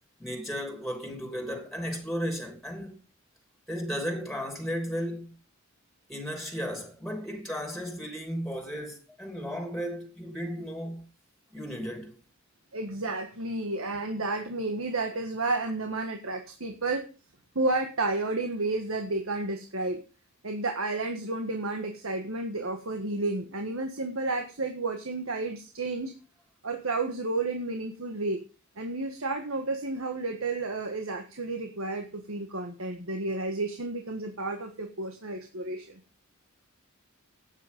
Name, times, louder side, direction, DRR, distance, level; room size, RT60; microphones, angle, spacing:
voice 1, 0.2-3.0 3.7-5.4 6.1-11.1 11.5-12.1, equal, ahead, 3.0 m, -34 dB
voice 2, 12.7-17.1 17.6-20.0 20.4-26.1 26.6-28.4 28.8-36.0, right 2 dB, 85° right, 1.6 m, -31 dB
13.0 x 9.1 x 5.3 m
head